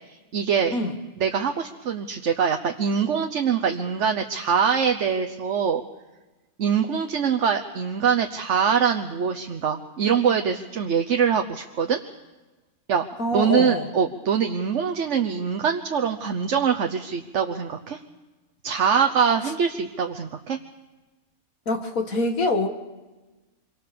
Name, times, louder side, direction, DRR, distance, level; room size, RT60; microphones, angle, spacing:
voice 1, 0.3-0.7 1.2-5.8 6.6-12.0 12.9-13.1 13.3-18.0 18.6-20.6, right 7 dB, 60° right, 5 dB, 1.2 m, -23 dB
voice 2, 13.2-13.9 21.7-22.7, left 2 dB, 75° left, 5 dB, 2.3 m, -24 dB
26.5 x 23.5 x 6.9 m, 1.2 s
omnidirectional pair, 1.5 m